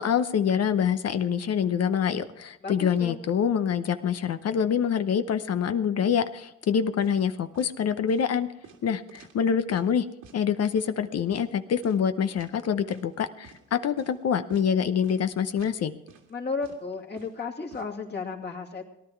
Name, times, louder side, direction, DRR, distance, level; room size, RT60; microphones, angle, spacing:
voice 1, 0.0-8.5 8.8-10.1 10.3-16.0, left 7 dB, 55° left, 10 dB, 0.8 m, -26 dB
voice 2, 2.6-3.2 16.3-18.9, left 4 dB, 35° left, 0 dB, 2.5 m, -34 dB
sound 1, 7.0-7.3 7.5-7.7 8.1-8.3 8.6-9.9 10.2-10.4 10.8-10.9 11.3-11.5 11.8-12.1 12.3-12.5 12.9-13.1 13.4-13.6 14.0-14.2 14.5-14.7 15.0-15.2 15.6-15.8 16.1-16.3 16.6-17.8, right 6 dB, 80° right, 2.1 m, -50 dB
18.5 x 11.0 x 4.6 m, 0.87 s
cardioid pair, 90°, 30 cm